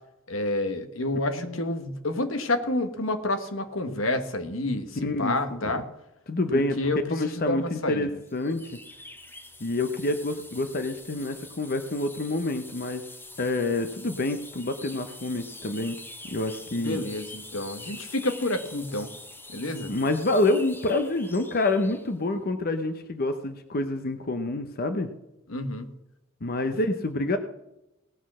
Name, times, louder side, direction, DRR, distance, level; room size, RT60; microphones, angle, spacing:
voice 1, 0.3-5.9 6.5-8.2 16.8-19.1 19.5-19.9 25.5-25.9 26.6-26.7, left 2 dB, 85° left, 8 dB, 1.4 m, -29 dB
voice 2, 1.4-1.7 5.0-5.8 6.3-6.8 7.1-8.8 9.6-13.0 13.4-16.0 16.3-17.0 19.9-25.1 26.4-27.4, left 2 dB, 50° left, 8 dB, 0.9 m, -27 dB
sound 1, 8.3-22.1, left 2 dB, 10° left, 1.0 m, -45 dB
18.0 x 6.3 x 6.2 m, 0.89 s
head